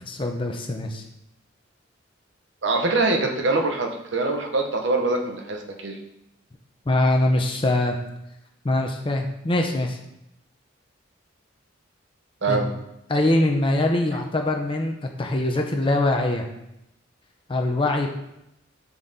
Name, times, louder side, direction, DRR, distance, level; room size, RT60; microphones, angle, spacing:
voice 1, 0.1-1.0 6.9-8.0 8.6-10.0 12.5-12.7 13.1-16.4 17.5-18.1, left 1 dB, 25° left, 3 dB, 0.6 m, -23 dB
voice 2, 2.6-6.0 12.4-12.7, right 3 dB, 65° right, 3 dB, 0.9 m, -24 dB
7.1 x 4.0 x 3.7 m, 0.84 s
head